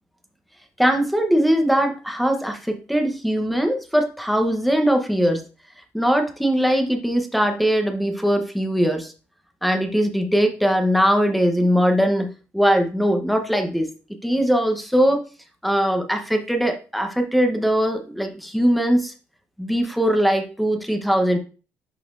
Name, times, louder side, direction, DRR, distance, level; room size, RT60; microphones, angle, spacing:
voice 1, 0.8-5.4 5.9-9.1 9.6-13.9 14.2-15.2 15.6-19.1 19.6-21.4, equal, ahead, 5 dB, 1.0 m, -20 dB
11.0 x 4.2 x 2.6 m, 0.35 s
cardioid pair, 145°, 5 cm